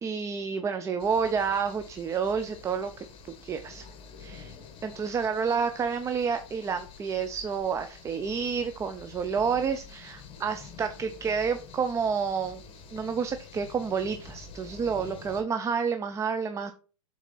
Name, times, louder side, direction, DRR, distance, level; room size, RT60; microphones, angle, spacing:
voice 1, 0.0-3.0 3.4-3.8 4.2-4.6 4.8-12.6 12.9-16.7, right 6 dB, 15° right, 9 dB, 0.5 m, -29 dB
sound 1, 1.0-15.4, left 5 dB, 30° left, 1.5 m, -48 dB
7.1 x 4.1 x 4.0 m, 0.39 s
hypercardioid pair, 110°, 17 cm